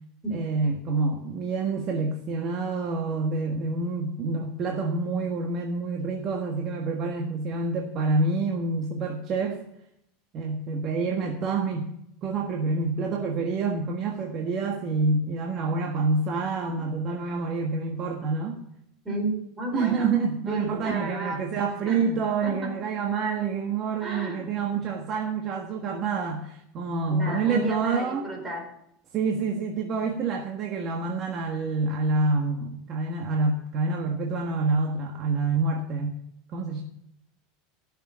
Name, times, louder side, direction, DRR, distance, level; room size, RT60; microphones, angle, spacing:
voice 1, 0.3-9.6 10.3-11.9 12.2-18.6 19.7-28.3 29.1-36.2 36.5-36.8, right 4 dB, 40° right, 2 dB, 1.4 m, -27 dB
voice 2, 19.6-20.1 20.5-21.4 21.9-22.0 22.4-22.7 24.0-24.5 27.1-28.6, right 2 dB, 15° right, -2 dB, 4.4 m, -32 dB
14.5 x 6.7 x 7.4 m, 0.76 s
supercardioid pair, 130°, 0 cm